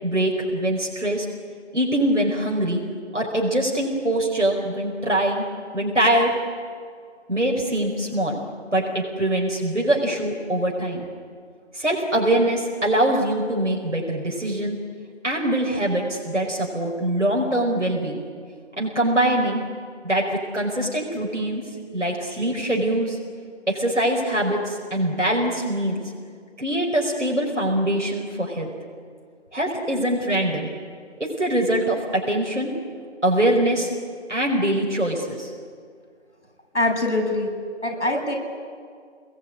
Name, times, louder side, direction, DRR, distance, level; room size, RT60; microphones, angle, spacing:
voice 1, 0.0-1.3 1.7-2.8 3.1-5.5 5.7-6.3 7.3-8.4 8.7-11.0 11.7-14.8 15.2-18.2 18.8-19.6 20.0-20.3 20.5-21.6 21.9-23.2 23.7-26.1 26.6-28.7 29.5-30.7 31.2-32.7 33.2-33.9 34.3-35.5, right 1 dB, 85° right, -1 dB, 5.3 m, -23 dB
voice 2, 36.7-37.5 37.8-38.3, left 2 dB, 75° left, 1 dB, 7.5 m, -23 dB
27.0 x 20.5 x 9.7 m, 2.1 s
figure-of-eight pair, 170°, 35 cm